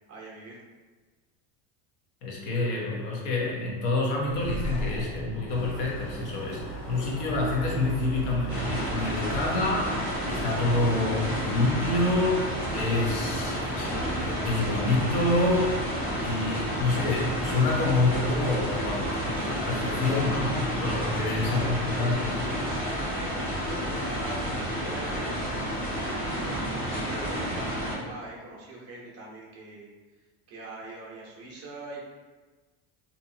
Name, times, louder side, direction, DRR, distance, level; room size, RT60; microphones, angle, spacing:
voice 1, 0.1-0.6 21.4-29.9 30.5-32.0, right 2 dB, 35° right, -3 dB, 0.6 m, -42 dB
voice 2, 2.2-9.9 10.3-15.8 16.2-22.4, left 2 dB, 60° left, -3 dB, 0.9 m, -27 dB
sound 1, 4.2-7.1, left 1 dB, 15° left, 0.4 m, -37 dB
sound 2, 5.5-22.8, right 1 dB, 85° left, 1.4 m, -39 dB
sound 3, 8.5-27.9, equal, 40° left, 1.2 m, -31 dB
2.7 x 2.5 x 2.6 m, 1.3 s
cardioid pair, 155°, 44 cm